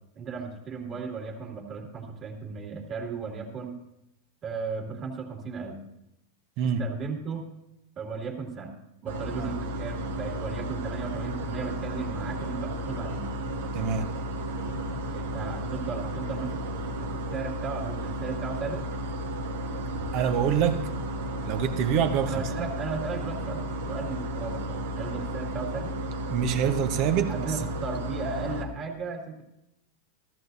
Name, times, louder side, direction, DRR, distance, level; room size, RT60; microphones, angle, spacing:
voice 1, 0.2-3.8 4.4-5.8 6.6-7.5 8.0-8.7 9.0-13.3 15.1-18.9 22.3-26.0 27.3-29.4, right 5 dB, 30° right, 2.4 m, -36 dB
sound 1, 9.1-28.6, right 1 dB, 85° right, 1.4 m, -33 dB
voice 2, 13.7-14.1 20.1-20.9 21.5-22.4 26.3-27.6, right 8 dB, 50° right, 1.0 m, -26 dB
14.0 x 13.5 x 2.7 m
hypercardioid pair, 120°, 0 cm